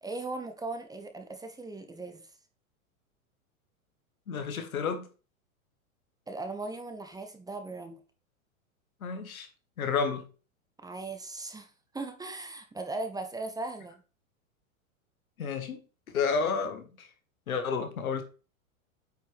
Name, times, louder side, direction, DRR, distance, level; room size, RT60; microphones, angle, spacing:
voice 1, 0.0-2.3 6.3-8.0 10.8-13.9, right 2 dB, 10° right, 0.8 m, -38 dB
voice 2, 4.3-5.1 9.0-9.5 9.8-10.3 15.4-15.8 16.1-17.1 17.5-18.2, left 5 dB, 85° left, 1.6 m, -30 dB
8.8 x 4.7 x 3.4 m
hypercardioid pair, 110°, 41 cm